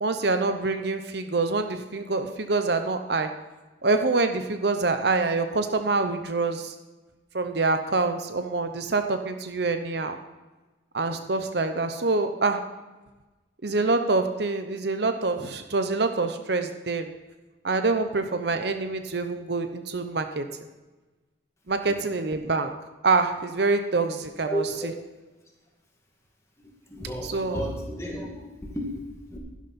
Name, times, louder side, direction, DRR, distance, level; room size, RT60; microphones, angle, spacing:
voice 1, 0.0-3.3 3.8-6.7 7.3-10.2 10.9-12.6 13.6-17.1 17.6-20.5 21.7-22.7 23.0-24.6 27.3-27.6, right 3 dB, 60° right, 7 dB, 0.8 m, -26 dB
voice 2, 24.4-24.9 26.9-29.4, equal, 15° left, -1 dB, 2.0 m, -33 dB
11.5 x 11.0 x 4.3 m, 1.2 s
head